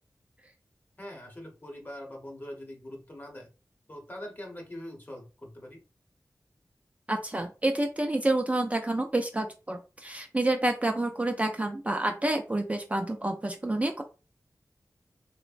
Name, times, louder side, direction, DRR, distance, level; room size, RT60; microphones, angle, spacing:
voice 1, 1.0-3.5 3.9-5.8, left 1 dB, 30° left, 1 dB, 0.9 m, -43 dB
voice 2, 7.1-14.0, right 2 dB, 20° right, 3 dB, 0.3 m, -28 dB
3.0 x 2.0 x 2.5 m, 0.32 s
wide cardioid pair, 70°, 7 cm